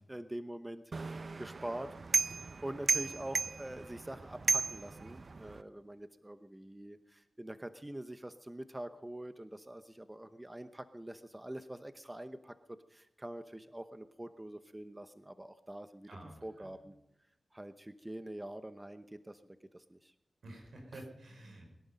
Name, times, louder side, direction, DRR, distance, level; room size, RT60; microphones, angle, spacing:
voice 1, 0.0-1.9 2.6-16.1 16.4-16.9 17.5-20.1 20.9-21.1, right 1 dB, 15° right, 11 dB, 0.8 m, -45 dB
sound 1, 0.9-5.6, right 4 dB, 55° right, 0.6 m, -35 dB
voice 2, 16.1-16.8 20.4-21.7, right 1 dB, 85° right, 2 dB, 4.9 m, -50 dB
21.5 x 11.5 x 5.3 m, 0.92 s
cardioid pair, 60°, 0 cm